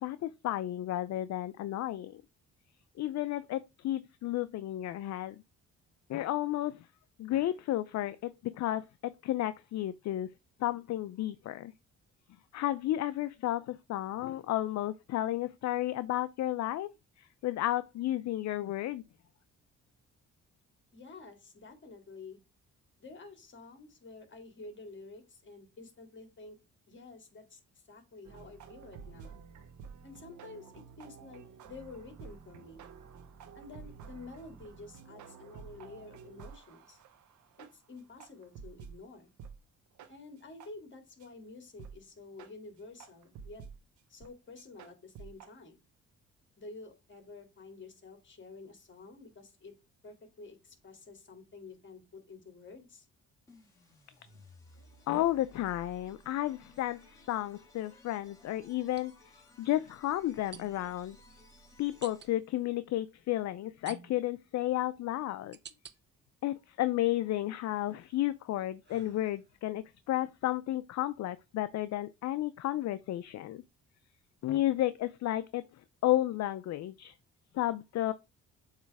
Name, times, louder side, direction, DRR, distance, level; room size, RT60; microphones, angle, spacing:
voice 1, 0.0-2.2 3.0-5.4 6.1-6.9 7.2-8.9 9.2-10.3 10.6-11.7 12.5-16.9 17.2-19.0 55.1-59.1 59.6-61.2 61.8-65.6 66.4-73.6 74.4-75.6 76.0-77.1 77.5-78.1, left 14 dB, 65° left, 0.5 m, -32 dB
voice 2, 20.9-22.4 23.0-26.6 26.9-27.6 27.9-29.4 30.0-32.8 33.5-37.0 37.6-39.3 40.1-43.6 44.1-45.8 46.6-49.7 50.0-53.1, left 3 dB, 40° left, 2.4 m, -50 dB
sound 1, 28.2-39.0 39.4-39.6 40.0-40.1 40.6-40.7 41.2-41.3 41.8-42.0 42.4-42.5 43.0-43.8 44.2-44.3 44.6-45.5, right 6 dB, 75° right, 1.1 m, -50 dB
sound 2, 53.5-62.6, left 1 dB, 10° left, 2.7 m, -59 dB
sound 3, 59.0-59.1 60.5-60.9 62.0-62.3 63.8-64.4 65.0-66.0 66.5-67.2 67.6-69.6, right 7 dB, 35° right, 0.6 m, -52 dB
7.5 x 3.2 x 4.7 m
cardioid pair, 90°, 30 cm